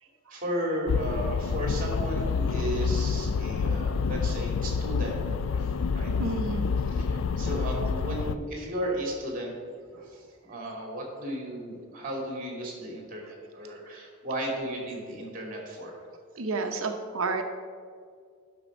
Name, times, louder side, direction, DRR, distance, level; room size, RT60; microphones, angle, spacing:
voice 1, 0.3-5.2 5.5-6.1 6.9-9.5 9.9-16.1, right 1 dB, 40° right, 0 dB, 2.4 m, -34 dB
sound 1, 0.9-8.4, left 5 dB, 65° left, 0.3 m, -28 dB
voice 2, 6.2-6.7 16.4-17.4, right 3 dB, 70° right, 5 dB, 0.8 m, -30 dB
11.0 x 6.1 x 5.1 m, 2.1 s
head